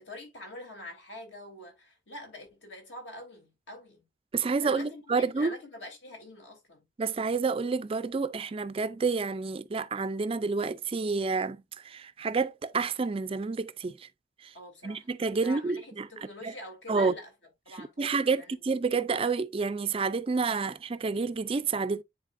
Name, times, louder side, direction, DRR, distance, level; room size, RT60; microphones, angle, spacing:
voice 1, 0.0-4.1 4.6-6.9 14.5-15.1 15.4-17.3 17.6-18.6, left 1 dB, 65° left, 3.1 m, -45 dB
voice 2, 4.3-5.5 7.0-14.1 14.4-14.5 14.8-16.1 16.4-16.5 16.9-17.1 17.8-22.0, right 4 dB, 30° right, 0.4 m, -29 dB
10.0 x 4.1 x 2.5 m
head